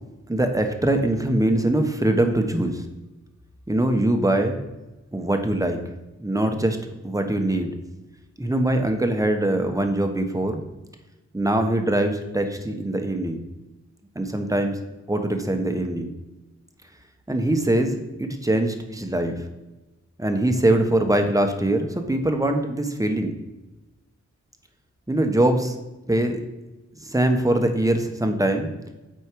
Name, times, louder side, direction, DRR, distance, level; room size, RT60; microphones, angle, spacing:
voice 1, 0.3-2.8 3.7-4.6 5.1-5.8 6.2-6.8 7.0-7.8 8.4-10.6 11.3-13.4 14.1-14.8 15.1-16.1 17.3-19.4 20.2-23.3 25.1-25.8 26.1-26.4 27.0-28.7, right 1 dB, 10° right, 5 dB, 1.1 m, -22 dB
8.3 x 4.5 x 4.7 m, 1.0 s
cardioid pair, 50°, 30 cm